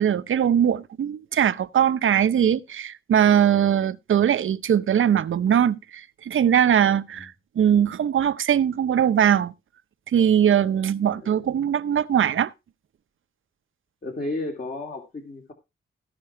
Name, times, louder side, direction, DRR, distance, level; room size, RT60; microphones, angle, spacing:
voice 1, 0.0-9.5 10.1-12.5, right 9 dB, 70° right, 0.8 m, -21 dB
voice 2, 11.2-11.7 14.0-15.5, left 2 dB, 40° left, 2.7 m, -33 dB
15.5 x 6.1 x 4.5 m
wide cardioid pair, 100°, 21 cm